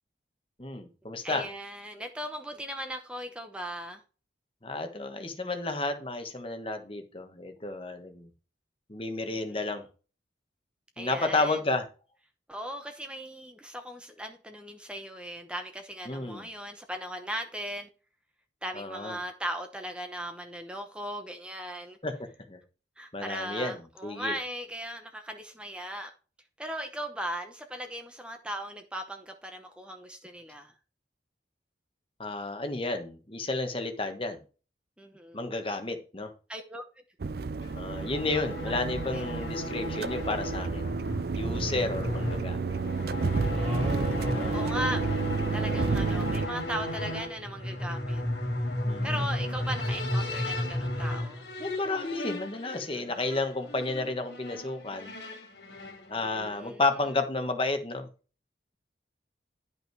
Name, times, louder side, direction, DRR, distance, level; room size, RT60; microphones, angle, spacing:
voice 1, 0.6-1.5 4.6-8.3 8.9-9.8 11.0-11.8 16.1-16.5 18.7-19.2 22.0-22.6 23.1-24.3 32.2-34.4 35.3-36.3 37.7-42.8 44.3-44.5 48.9-49.2 51.6-55.1 56.1-58.1, left 2 dB, 30° left, 1.3 m, -32 dB
voice 2, 1.2-4.0 9.3-9.6 11.0-11.6 12.5-17.9 18.6-22.0 23.0-26.1 26.6-30.7 35.0-35.5 36.5-36.8 38.3-38.8 39.1-39.2 43.4-44.0 44.5-45.1 45.5-48.2 49.0-51.4 56.5-56.8, equal, 5° right, 0.9 m, -38 dB
sound 1, 37.2-46.5, right 4 dB, 55° right, 0.4 m, -31 dB
sound 2, 37.6-56.7, left 1 dB, 65° left, 3.0 m, -35 dB
sound 3, 43.5-46.0, equal, 30° right, 1.9 m, -35 dB
11.5 x 5.5 x 4.7 m
head